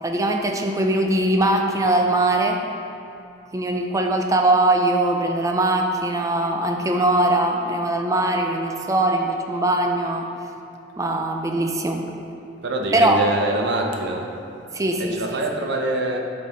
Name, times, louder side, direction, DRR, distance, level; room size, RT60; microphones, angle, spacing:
voice 1, 0.0-2.6 3.5-10.3 11.0-12.1 12.9-13.2 14.7-15.4, right 1 dB, 15° right, 3 dB, 0.4 m, -21 dB
voice 2, 12.6-14.3 15.0-16.2, right 2 dB, 60° right, 2 dB, 0.7 m, -25 dB
6.2 x 5.4 x 4.1 m, 2.6 s
head